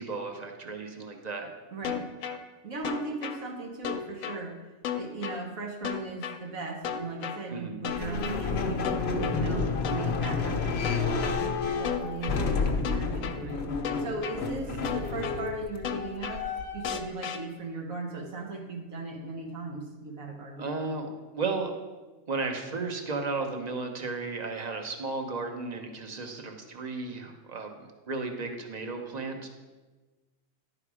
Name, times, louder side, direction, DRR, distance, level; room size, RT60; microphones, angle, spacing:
voice 1, 0.0-1.5 7.5-7.8 14.7-15.0 20.6-21.7 22.3-29.5, right 3 dB, 35° right, 4 dB, 0.9 m, -34 dB
voice 2, 1.7-2.0 2.6-4.6 4.9-8.9 9.3-13.6 14.0-16.5 16.7-20.6, right 3 dB, 80° right, 1 dB, 1.8 m, -37 dB
sound 1, 1.8-2.4 2.8-3.4 3.8-4.4 4.8-5.4 5.8-6.4 6.8-7.4 7.8-8.4 8.8-9.4 9.8-10.4 10.8-11.4 11.8-12.4 12.8-13.4 13.8-14.4 14.8-15.4 15.8-16.4 16.8-17.4, left 8 dB, 80° left, 1.0 m, -33 dB
sound 2, 7.9-17.0, left 4 dB, 55° left, 0.9 m, -30 dB
11.0 x 4.9 x 4.8 m, 1.2 s
omnidirectional pair, 1.4 m